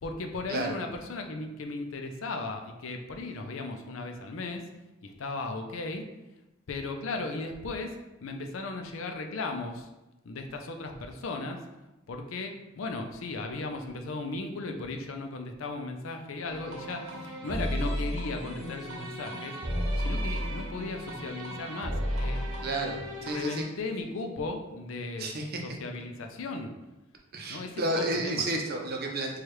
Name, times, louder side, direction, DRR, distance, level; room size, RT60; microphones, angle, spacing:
voice 1, 0.0-4.7 5.0-6.1 6.7-9.9 10.2-11.7 12.1-19.6 20.0-22.4 23.2-25.3 25.6-26.7 27.5-28.5, left 3 dB, 85° left, 4 dB, 0.5 m, -36 dB
sound 1, 16.5-23.6, equal, 85° right, 1.0 m, -33 dB
voice 2, 22.6-23.6 25.2-25.6 27.3-29.4, right 2 dB, 50° right, 1 dB, 0.6 m, -31 dB
4.6 x 2.4 x 3.0 m, 1.0 s
head